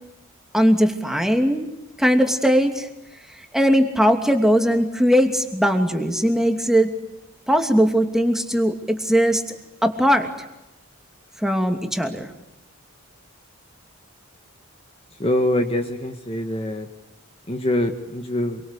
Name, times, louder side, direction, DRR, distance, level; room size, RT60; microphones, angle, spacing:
voice 1, 0.5-1.7 2.0-2.9 3.3-6.9 7.5-9.4 9.8-10.3 11.4-12.3, equal, ahead, 5 dB, 2.7 m, -19 dB
voice 2, 15.2-16.9 17.5-18.6, left 1 dB, 25° left, 5 dB, 1.8 m, -24 dB
27.5 x 24.5 x 8.5 m, 0.93 s
head